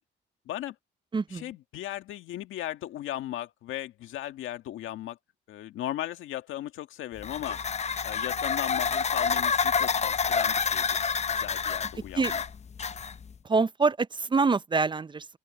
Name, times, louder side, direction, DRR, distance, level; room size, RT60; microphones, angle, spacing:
voice 1, 0.5-0.8 1.3-5.2 5.5-7.6 8.0-10.9 11.3-12.4, left 13 dB, 85° left, 1.9 m, -37 dB
voice 2, 1.1-1.4 12.2-12.3 13.5-15.3, right 4 dB, 25° right, 0.5 m, -25 dB
sound 1, 7.2-13.4, left 6 dB, 35° left, 0.7 m, -28 dB
open air
cardioid pair, 90°, 20 cm